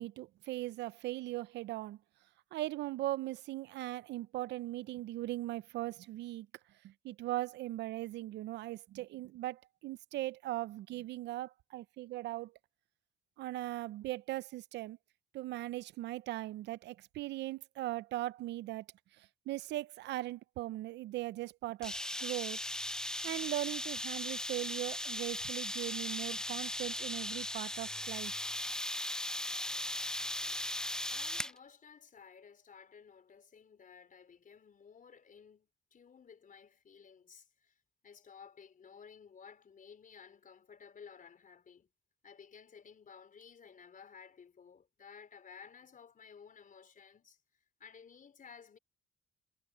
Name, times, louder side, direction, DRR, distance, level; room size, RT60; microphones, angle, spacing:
voice 1, 0.0-2.0 2.5-6.5 6.8-12.5 13.4-15.0 15.3-18.9 19.2-22.6 23.2-28.3, right 16 dB, 75° right, 0.6 m, -39 dB
sound 1, 21.8-31.6, left 1 dB, 5° left, 0.3 m, -38 dB
voice 2, 31.1-41.9 42.2-47.4 47.8-48.8, left 6 dB, 50° left, 4.3 m, -56 dB
supercardioid pair, 60°, 18 cm